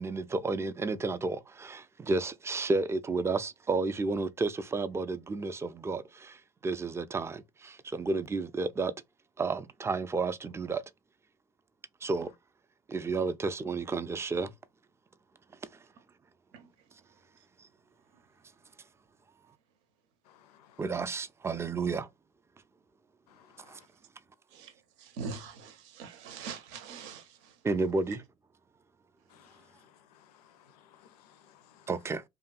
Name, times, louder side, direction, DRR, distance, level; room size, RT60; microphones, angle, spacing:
voice 1, 0.0-8.9 9.4-10.8 12.0-12.3 12.9-14.5 20.8-22.1 23.7-23.8 27.6-28.2 31.9-32.2, right 3 dB, 15° right, 0.3 m, -31 dB
voice 2, 20.3-20.8 23.3-23.9 29.3-31.9, left 9 dB, 80° left, 0.4 m, -61 dB
voice 3, 25.2-27.2, right 5 dB, 70° right, 0.7 m, -41 dB
2.7 x 2.5 x 2.3 m
hypercardioid pair, 65°, 19 cm